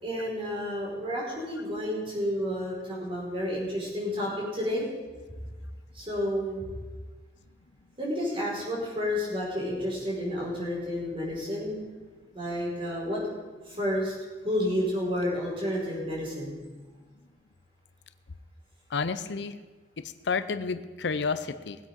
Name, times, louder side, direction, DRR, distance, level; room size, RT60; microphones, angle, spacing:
voice 1, 0.0-4.8 5.9-6.7 8.0-11.8 12.3-13.2 13.7-14.1 14.4-16.6, equal, 30° right, -4 dB, 4.7 m, -30 dB
voice 2, 18.9-19.6 20.3-21.8, left 4 dB, 80° left, 12 dB, 0.6 m, -30 dB
19.5 x 8.2 x 5.3 m, 1.3 s
head